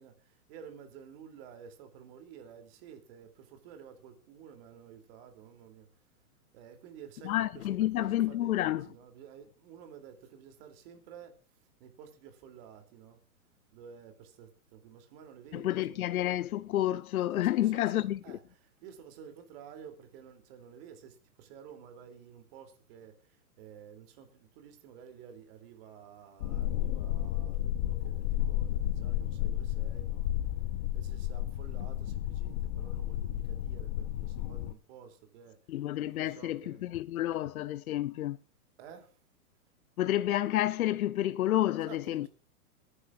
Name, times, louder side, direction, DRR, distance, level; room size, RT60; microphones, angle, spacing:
voice 1, 0.0-5.9 6.5-11.3 11.8-13.2 13.7-16.0 17.3-23.1 23.6-30.3 30.6-30.7 30.9-35.6 36.0-36.8 38.8-39.1 41.7-42.3, right 8 dB, 40° right, 3.0 m, -52 dB
voice 2, 7.2-8.8 15.5-18.2 35.7-38.4 40.0-42.3, left 14 dB, 70° left, 0.7 m, -30 dB
sound 1, 26.4-34.7, left 12 dB, 30° left, 0.6 m, -32 dB
26.5 x 9.8 x 2.5 m
hypercardioid pair, 145°, 44 cm